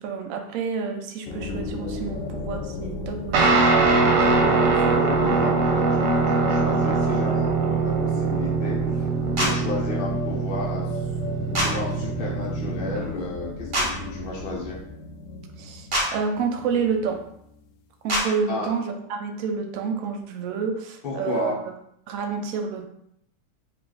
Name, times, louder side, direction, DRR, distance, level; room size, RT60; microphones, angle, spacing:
voice 1, 0.0-3.7 4.4-4.7 15.6-17.2 18.0-21.5 22.1-22.9, right 5 dB, 70° right, 5 dB, 0.8 m, -29 dB
sound 1, 1.2-17.6, left 3 dB, 85° left, 1.3 m, -35 dB
Guitar, 3.3-13.1, right 4 dB, 90° right, 1.4 m, -22 dB
voice 2, 4.3-11.0 11.6-14.8 18.5-18.7 21.0-21.6, left 2 dB, 45° left, -4 dB, 0.7 m, -32 dB
sound 2, 9.4-9.5 11.5-11.7 13.7-13.9 15.9-16.1 18.1-18.2, right 1 dB, 40° right, 0.8 m, -23 dB
3.3 x 2.8 x 3.8 m, 0.74 s
omnidirectional pair, 1.9 m